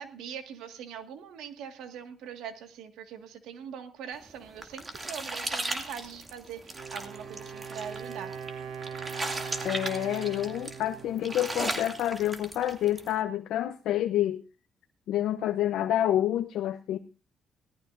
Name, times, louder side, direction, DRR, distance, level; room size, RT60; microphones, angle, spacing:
voice 1, 0.0-8.3, right 8 dB, 90° right, 7 dB, 1.8 m, -42 dB
sound 1, 4.2-13.1, right 2 dB, 25° right, 2.5 m, -37 dB
Wind instrument woodwind instrument, 6.6-12.4, right 6 dB, 75° right, 2.6 m, -41 dB
voice 2, 9.6-14.4 15.1-17.0, left 12 dB, 80° left, 7 dB, 0.7 m, -28 dB
18.5 x 13.5 x 2.6 m, 0.30 s
cardioid pair, 90°, 0 cm